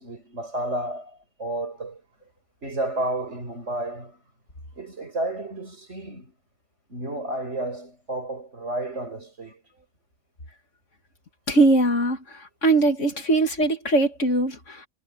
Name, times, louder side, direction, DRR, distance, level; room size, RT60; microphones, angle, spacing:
voice 1, 0.0-2.0 2.6-4.2 4.8-6.3 6.9-9.6, right 1 dB, 50° right, 5.6 m, -31 dB
voice 2, 11.5-14.9, right 2 dB, 55° left, 2.7 m, -21 dB
omnidirectional pair, 1.5 m